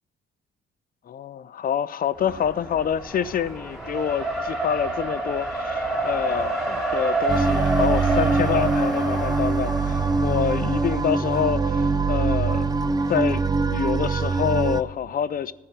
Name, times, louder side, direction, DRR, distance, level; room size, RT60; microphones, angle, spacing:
voice 1, 1.1-15.5, left 9 dB, 45° left, 0.5 m, -27 dB
Race car auto racing, 2.2-13.2, right 2 dB, ahead, 2.4 m, -29 dB
sound 1, 7.3-14.8, right 4 dB, 20° right, 0.4 m, -23 dB
13.5 x 4.8 x 7.3 m
cardioid pair, 90°, 20 cm